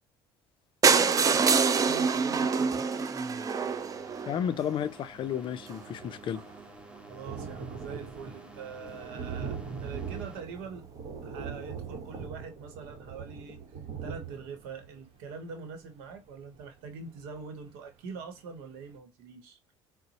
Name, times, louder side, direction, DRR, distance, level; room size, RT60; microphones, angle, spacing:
sound 1, 0.8-4.7 5.4-5.5 5.7-5.8 6.1-6.2 6.4-6.5, right 5 dB, 30° right, 0.4 m, -25 dB
voice 1, 0.9-2.9 7.1-10.9 11.2-13.6 14.0-19.6, right 5 dB, 85° right, 0.9 m, -43 dB
sound 2, 2.7-10.4, right 2 dB, 10° right, 0.8 m, -50 dB
voice 2, 4.3-6.4, left 9 dB, 45° left, 0.4 m, -32 dB
Thunder, 5.1-17.7 18.2-18.3 18.6-18.7, right 6 dB, 55° right, 1.0 m, -42 dB
3.8 x 2.0 x 2.8 m
supercardioid pair, 80°, 11 cm